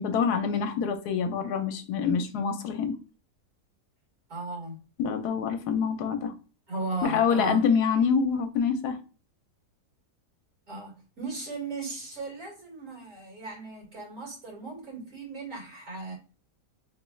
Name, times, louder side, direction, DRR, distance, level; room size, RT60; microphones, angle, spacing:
voice 1, 0.0-3.0 5.0-6.3 7.0-9.0, left 6 dB, 75° left, 1.1 m, -26 dB
voice 2, 4.3-4.7 6.7-7.7 10.7-16.1, right 3 dB, 60° right, 2.6 m, -36 dB
4.1 x 3.1 x 2.2 m
omnidirectional pair, 1.7 m